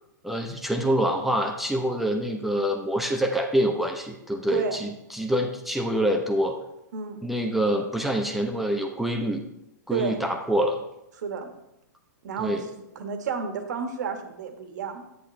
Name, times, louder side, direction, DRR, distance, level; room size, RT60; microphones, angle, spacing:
voice 1, 0.2-6.6 7.2-9.4 9.9-10.8 12.4-12.6, equal, ahead, 2 dB, 0.8 m, -26 dB
voice 2, 6.9-7.2 9.9-10.2 11.2-11.5 12.2-15.0, right 5 dB, 65° right, 6 dB, 1.6 m, -31 dB
11.5 x 9.1 x 3.3 m, 0.85 s
hypercardioid pair, 120°, 10 cm